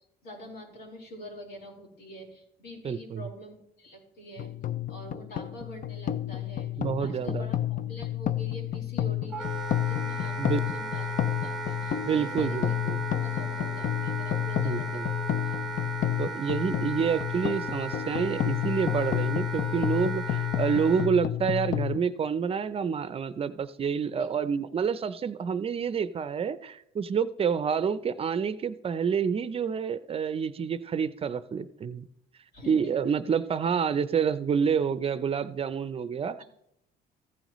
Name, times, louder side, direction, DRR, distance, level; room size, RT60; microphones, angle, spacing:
voice 1, 0.2-4.5 4.9-12.8 13.2-15.6 24.2-24.3 32.5-32.9, equal, 75° left, -2 dB, 4.5 m, -46 dB
voice 2, 2.8-3.2 6.8-7.5 10.4-10.6 12.0-13.0 14.6-15.1 16.2-32.1 32.7-36.4, right 6 dB, 35° right, 14 dB, 0.5 m, -28 dB
sound 1, 4.4-22.0, left 12 dB, 50° left, 0.5 m, -30 dB
Wind instrument woodwind instrument, 9.3-21.1, right 4 dB, ahead, 1.2 m, -37 dB
14.5 x 9.0 x 3.1 m, 0.77 s
cardioid pair, 110°, 17 cm